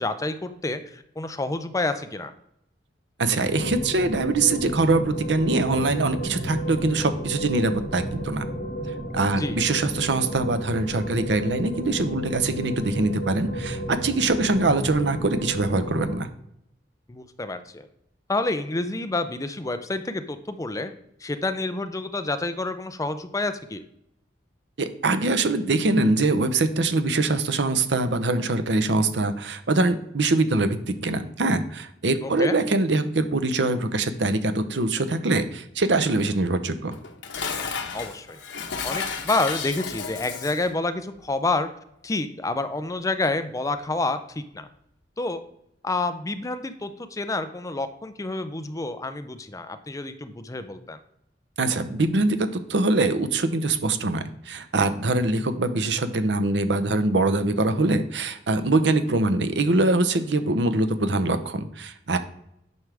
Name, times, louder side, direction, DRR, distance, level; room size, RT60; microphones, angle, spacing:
voice 1, 0.0-2.3 9.4-9.6 17.1-17.9 18.3-20.9 21.2-23.8 32.4-32.6 37.9-38.4 38.8-41.7 42.0-44.2 44.5-44.7 45.2-45.4 45.8-51.0, left 2 dB, 20° left, 9 dB, 0.5 m, -28 dB
voice 2, 3.2-8.5 9.1-16.3 24.8-36.9 51.6-62.2, right 2 dB, 70° right, 10 dB, 0.8 m, -23 dB
sound 1, 3.4-16.2, right 1 dB, 45° left, 1.7 m, -33 dB
Dishes pots and pans, 36.9-40.7, left 6 dB, 90° left, 1.0 m, -32 dB
9.4 x 6.2 x 3.4 m, 0.75 s
head